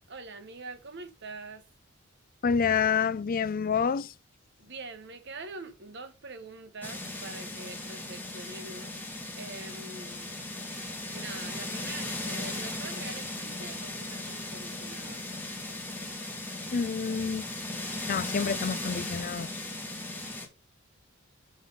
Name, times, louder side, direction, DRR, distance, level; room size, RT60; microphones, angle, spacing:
voice 1, 0.1-1.7 4.6-9.1 9.4-10.3 10.9-15.3, right 3 dB, 60° right, 1.3 m, -44 dB
voice 2, 2.4-4.1 16.7-17.5 18.1-19.5, left 6 dB, 45° left, 0.4 m, -28 dB
sound 1, 6.8-20.5, left 2 dB, 10° left, 2.0 m, -37 dB
6.0 x 5.5 x 5.4 m
head